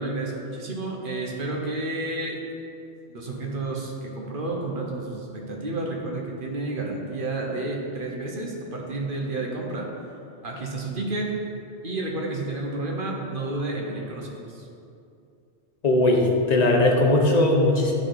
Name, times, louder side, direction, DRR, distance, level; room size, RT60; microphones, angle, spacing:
voice 1, 0.0-2.4 3.1-9.9 10.4-11.3 11.8-14.7, right 2 dB, 50° right, -1 dB, 1.2 m, -31 dB
voice 2, 15.8-17.9, left 2 dB, 40° left, 0 dB, 0.9 m, -19 dB
11.0 x 4.2 x 4.0 m, 2.5 s
omnidirectional pair, 1.1 m